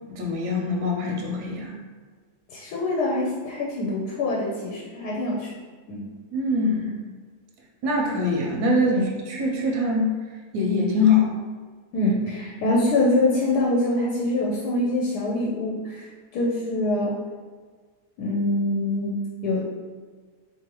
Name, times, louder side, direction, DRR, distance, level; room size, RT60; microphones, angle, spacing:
voice 1, 0.1-1.7 6.3-7.0 7.8-10.1 10.5-11.3, left 3 dB, 85° right, -1 dB, 1.2 m, -23 dB
voice 2, 2.5-5.5 5.9-6.1 8.9-9.1 11.9-16.1 16.3-17.2 18.2-19.7, left 2 dB, 85° left, -4 dB, 1.2 m, -24 dB
3.8 x 3.0 x 2.9 m, 1.5 s
omnidirectional pair, 1.7 m